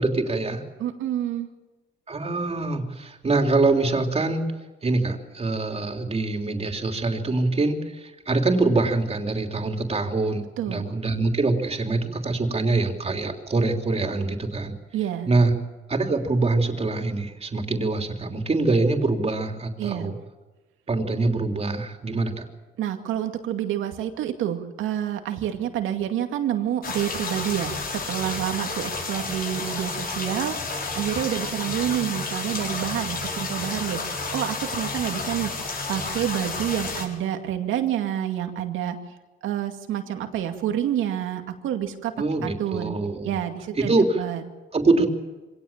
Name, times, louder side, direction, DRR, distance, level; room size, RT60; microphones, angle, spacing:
voice 1, 0.0-0.6 2.1-4.5 4.8-14.7 15.3-15.5 15.9-20.1 20.9-22.5 42.2-43.3 43.8-44.2 44.7-45.1, right 3 dB, 30° right, 4 dB, 3.3 m, -24 dB
voice 2, 0.8-1.5 10.6-10.9 14.9-15.3 19.8-20.1 22.8-35.5 35.9-39.0 39.4-42.1 42.4-43.0 43.2-44.4, right 11 dB, 85° right, 6 dB, 2.3 m, -28 dB
sound 1, 26.8-37.1, left 3 dB, 50° left, 6.7 m, -31 dB
25.0 x 18.0 x 7.4 m, 1.2 s
cardioid pair, 90°, 20 cm